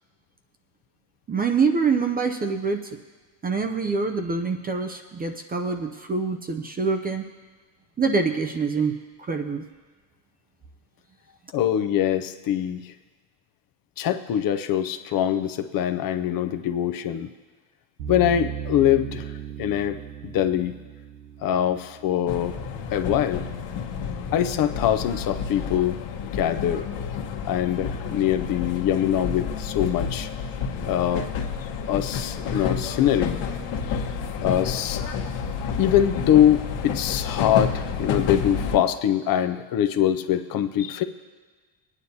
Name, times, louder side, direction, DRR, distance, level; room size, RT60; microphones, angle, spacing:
voice 1, 1.3-2.8 3.4-7.2 8.0-9.7, right 4 dB, 20° right, 5 dB, 0.5 m, -25 dB
voice 2, 11.5-12.9 14.0-17.3 18.1-19.3 19.6-20.0 20.2-20.7 21.4-22.6 22.9-23.4 24.3-26.0 26.3-26.9 27.4-30.3 30.9-31.3 31.8-33.4 33.9-34.0 34.4-35.0 35.8-41.0, left 10 dB, 45° left, 10 dB, 0.6 m, -23 dB
sound 1, 18.0-23.1, right 9 dB, 90° right, 1.0 m, -37 dB
sound 2, 22.3-38.8, left 6 dB, 65° left, 1.3 m, -30 dB
20.0 x 9.7 x 2.8 m, 1.4 s
cardioid pair, 120°, 49 cm